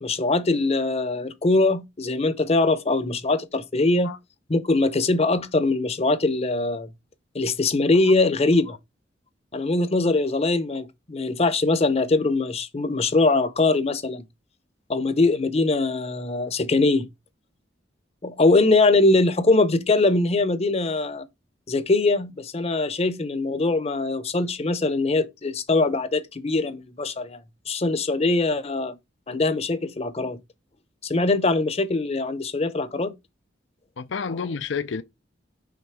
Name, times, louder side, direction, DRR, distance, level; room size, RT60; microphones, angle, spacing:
voice 1, 0.0-4.1 4.5-6.9 7.3-8.8 9.5-14.2 14.9-17.1 18.2-21.2 21.7-27.4 27.7-28.9 29.3-30.4 31.0-33.1, left 2 dB, 35° left, 0.7 m, -22 dB
voice 2, 34.0-35.0, left 5 dB, 75° left, 0.5 m, -29 dB
5.8 x 3.9 x 4.8 m
head